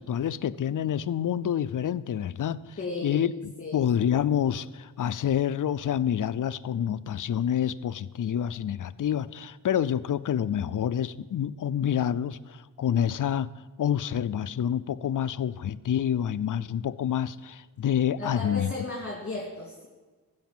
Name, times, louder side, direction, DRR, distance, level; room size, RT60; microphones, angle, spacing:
voice 1, 0.0-13.5 13.8-18.7, left 9 dB, 65° left, 16 dB, 0.5 m, -28 dB
voice 2, 2.8-3.2 3.6-3.8 18.2-19.9, left 2 dB, 40° left, -2 dB, 2.0 m, -35 dB
15.0 x 5.2 x 7.3 m, 1.3 s
wide cardioid pair, 90°, 35 cm